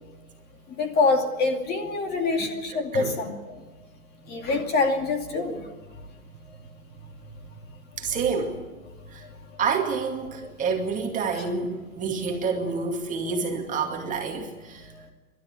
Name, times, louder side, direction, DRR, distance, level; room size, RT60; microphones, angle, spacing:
voice 1, 0.8-3.6 4.3-5.7 11.3-11.5, left 3 dB, 20° left, 4 dB, 2.5 m, -25 dB
voice 2, 8.0-8.5 9.1-9.2 9.6-14.9, right 5 dB, 20° right, 2 dB, 2.3 m, -28 dB
28.0 x 13.0 x 9.8 m, 1.2 s
hypercardioid pair, 145°, 42 cm